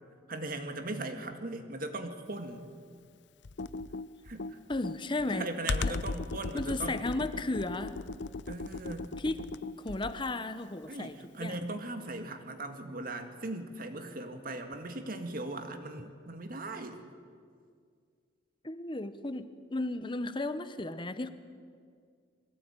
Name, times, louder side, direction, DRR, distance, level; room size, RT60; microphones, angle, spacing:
voice 1, 0.3-2.7 4.2-4.6 5.3-7.1 8.5-9.1 10.9-17.0, right 2 dB, 45° right, 6 dB, 2.0 m, -39 dB
Computer keyboard, 3.4-10.3, left 3 dB, 60° left, 0.6 m, -37 dB
voice 2, 4.7-5.5 5.8-5.9 6.5-8.0 9.2-9.5 9.8-11.6 18.6-21.3, left 2 dB, 25° left, 11 dB, 0.9 m, -34 dB
22.5 x 17.0 x 9.1 m, 2.1 s
head